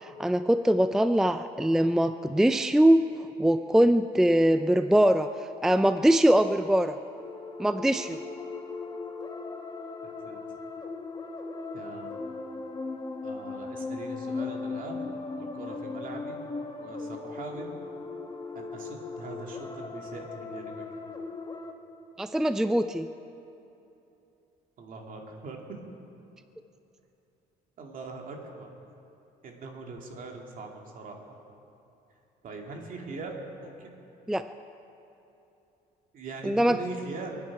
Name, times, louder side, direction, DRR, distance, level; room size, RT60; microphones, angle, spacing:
voice 1, 0.2-3.0 3.4-5.3 5.6-6.9 7.6-8.2 22.2-23.1 34.3-34.4 36.5-36.8, right 1 dB, 5° right, 10 dB, 0.4 m, -22 dB
sound 1, 7.1-21.7, left 4 dB, 25° left, 1.3 m, -38 dB
voice 2, 11.7-12.1 13.2-15.0 15.4-16.4 16.8-17.7 18.5-20.8 24.8-25.6 27.8-28.7 29.4-31.4 32.4-33.9 36.1-37.4, right 3 dB, 55° right, 1 dB, 2.6 m, -41 dB
29.0 x 9.7 x 4.8 m, 2.9 s
cardioid pair, 110°, 17 cm